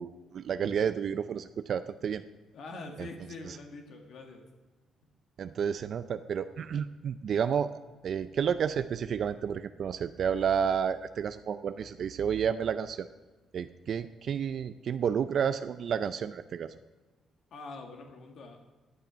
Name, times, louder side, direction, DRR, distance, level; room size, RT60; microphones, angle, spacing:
voice 1, 0.0-2.2 3.5-3.6 5.4-7.7 8.0-13.1 13.5-16.7, right 7 dB, 60° right, 11 dB, 0.4 m, -31 dB
voice 2, 2.5-4.4 17.5-18.6, left 3 dB, 70° left, 2 dB, 1.8 m, -44 dB
14.5 x 8.6 x 5.1 m, 1.2 s
cardioid pair, 90°, 0 cm